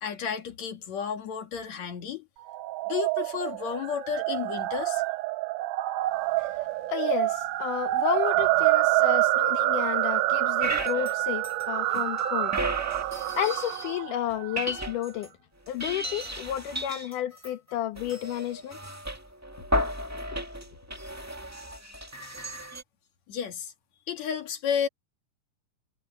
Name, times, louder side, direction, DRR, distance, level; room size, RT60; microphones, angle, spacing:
voice 1, 0.0-2.3 2.9-5.0 23.3-23.7 24.1-24.9, left 7 dB, 60° left, 2.8 m, -32 dB
sound 1, 2.5-14.9, right 17 dB, 80° right, 2.3 m, -27 dB
voice 2, 6.4-12.5 13.1-15.3 15.7-18.8, left 12 dB, 80° left, 2.7 m, -32 dB
sound 2, 10.6-11.1 11.4-14.0 14.3-15.3 15.6-22.8, equal, 10° right, 0.9 m, -34 dB
omnidirectional pair, 3.7 m